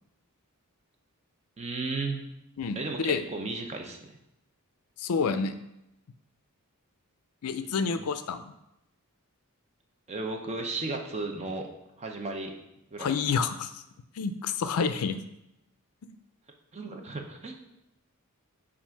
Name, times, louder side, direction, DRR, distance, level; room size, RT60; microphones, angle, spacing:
voice 1, 1.6-2.3 2.8-4.0 7.6-8.1 10.1-11.7 12.0-12.5 12.9-13.2 16.7-17.5, right 3 dB, 30° right, 3 dB, 0.7 m, -34 dB
voice 2, 2.6-3.2 5.0-5.6 7.4-8.5 13.0-13.8 14.2-15.2, left 5 dB, 75° left, 10 dB, 0.4 m, -29 dB
7.1 x 2.5 x 5.7 m, 0.88 s
head